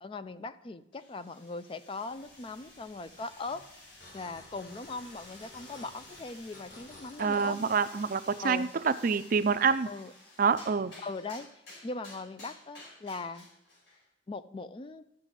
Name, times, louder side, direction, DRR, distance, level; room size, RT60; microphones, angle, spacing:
voice 1, 0.0-3.7 4.1-7.6 8.4-8.7 9.8-10.1 11.0-11.5 11.8-13.5 14.3-15.1, left 3 dB, 30° left, 12 dB, 0.4 m, -40 dB
sound 1, 0.9-14.1, left 2 dB, 85° left, 5.2 m, -53 dB
sound 2, 2.0-7.5, left 2 dB, 65° left, 4.7 m, -54 dB
voice 2, 7.2-9.9 10.4-10.9, right 5 dB, 45° right, 13 dB, 0.4 m, -27 dB
12.5 x 6.1 x 7.3 m, 0.83 s
head